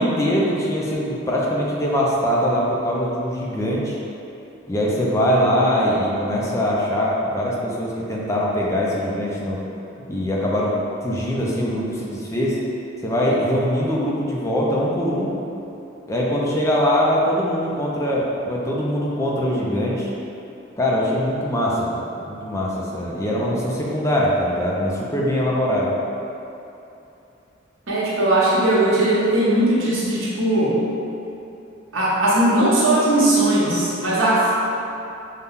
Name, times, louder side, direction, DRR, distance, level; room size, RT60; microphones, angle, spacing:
voice 1, 0.0-4.0 4.7-9.6 10.1-12.6 13.0-15.3 16.1-20.1 20.8-25.9, equal, 15° left, -5 dB, 0.5 m, -22 dB
voice 2, 27.9-30.8 31.9-34.5, right 1 dB, 85° right, -7 dB, 1.1 m, -18 dB
5.6 x 2.2 x 3.6 m, 2.8 s
head